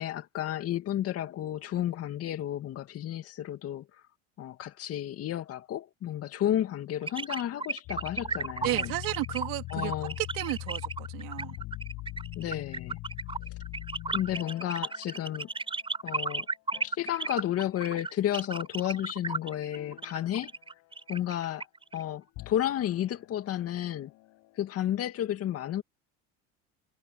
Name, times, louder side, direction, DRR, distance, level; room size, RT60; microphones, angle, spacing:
voice 1, 0.0-4.0 4.4-8.9 9.7-10.2 12.4-13.0 14.1-15.5 16.0-16.5 16.8-20.5 21.1-21.7 21.9-24.1 24.6-25.8, left 12 dB, 45° left, 2.3 m, -32 dB
sound 1, 7.1-22.0, right 3 dB, 15° right, 4.8 m, -34 dB
sound 2, 7.9-16.2 16.7-17.6 19.4-21.1 22.2-24.8, left 20 dB, 65° left, 7.7 m, -43 dB
voice 2, 8.6-9.9 10.2-11.6, right 24 dB, 70° right, 3.6 m, -33 dB
supercardioid pair, 100°, 32 cm